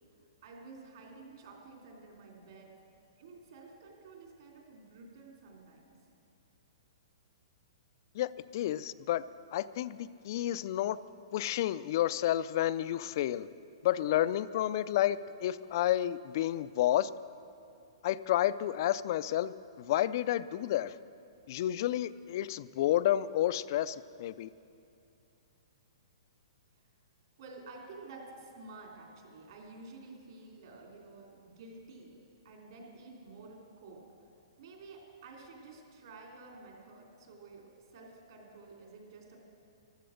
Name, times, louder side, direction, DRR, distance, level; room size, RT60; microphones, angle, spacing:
voice 1, 0.4-2.7 3.2-5.9 27.4-32.2 32.4-34.0 34.6-39.4, right 3 dB, 55° right, 0 dB, 3.3 m, -51 dB
voice 2, 8.1-9.2 9.5-11.0 11.3-13.5 13.8-17.1 18.0-21.0 21.5-24.5, left 12 dB, 45° left, 16 dB, 0.4 m, -30 dB
14.5 x 12.5 x 6.5 m, 2.6 s
hypercardioid pair, 160°, 3 cm